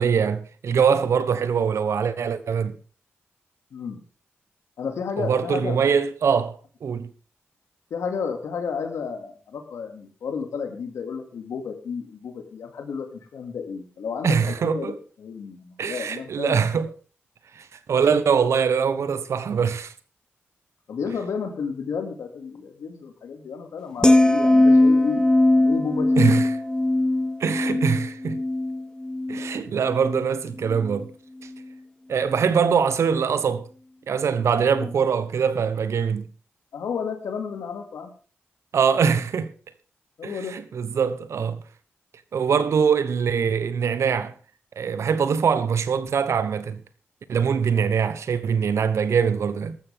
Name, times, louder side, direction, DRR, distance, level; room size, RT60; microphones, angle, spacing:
voice 1, 0.0-2.8 5.2-7.1 14.2-14.9 15.8-16.9 17.5-19.9 26.2-26.4 27.4-28.4 29.3-31.1 32.1-33.7 34.1-36.3 38.7-39.5 40.2-41.6 42.3-44.3 44.8-46.8 47.3-49.8, right 6 dB, 75° right, 1.1 m, -23 dB
voice 2, 4.8-5.8 7.9-16.8 20.9-25.2 25.5-26.4 34.6-34.9 36.7-38.1 40.2-40.6, left 6 dB, 85° left, 2.5 m, -32 dB
sound 1, 24.0-30.3 30.6-31.0, left 2 dB, 15° left, 1.1 m, -20 dB
14.5 x 13.0 x 3.6 m
supercardioid pair, 45°, 5 cm